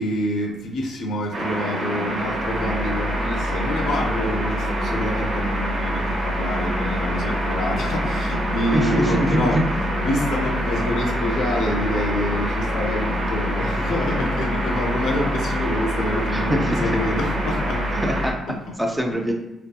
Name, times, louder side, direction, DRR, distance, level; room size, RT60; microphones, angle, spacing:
voice 1, 0.0-9.6 10.0-17.8 18.5-18.8, left 1 dB, 75° left, 0 dB, 0.5 m, -27 dB
sound 1, 1.3-18.3, equal, 60° right, 0.7 m, -25 dB
voice 2, 8.7-9.6 16.3-16.9 18.0-19.3, equal, 10° right, 2 dB, 0.4 m, -23 dB
2.5 x 2.5 x 2.3 m, 0.96 s
cardioid pair, 90°, 0 cm